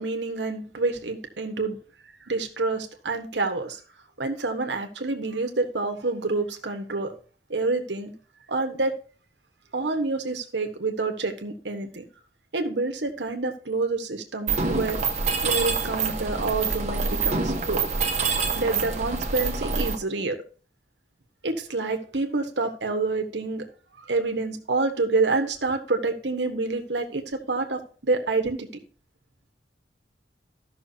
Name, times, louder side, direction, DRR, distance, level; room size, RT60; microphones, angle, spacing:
voice 1, 0.0-1.8 2.3-3.8 4.2-7.1 7.5-8.1 8.5-8.9 9.7-12.0 12.5-15.0 15.4-17.9 18.6-20.4 21.4-23.6 24.1-28.7, right 3 dB, 75° right, 6 dB, 1.3 m, -27 dB
Mechanisms, 14.5-19.9, right 4 dB, 40° right, 1.2 m, -26 dB
14.5 x 6.2 x 2.8 m, 0.41 s
head